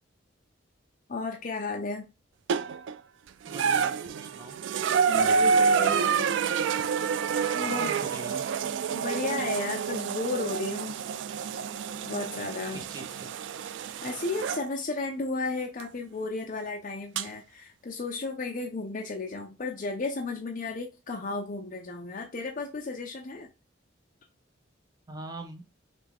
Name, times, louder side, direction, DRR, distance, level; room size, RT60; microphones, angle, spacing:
voice 1, 1.1-2.1 5.1-6.4 7.5-8.0 8.9-11.0 12.0-12.8 14.0-23.5, left 3 dB, 45° left, 2 dB, 0.5 m, -34 dB
sound 1, 2.5-3.0 3.5-14.7 15.8-15.9 17.2-17.3, right 6 dB, 70° right, 0.3 m, -28 dB
voice 2, 3.5-4.6 7.7-8.5 12.7-13.4 25.1-25.6, right 2 dB, 20° right, 5 dB, 0.6 m, -42 dB
5.8 x 2.2 x 3.5 m, 0.28 s
head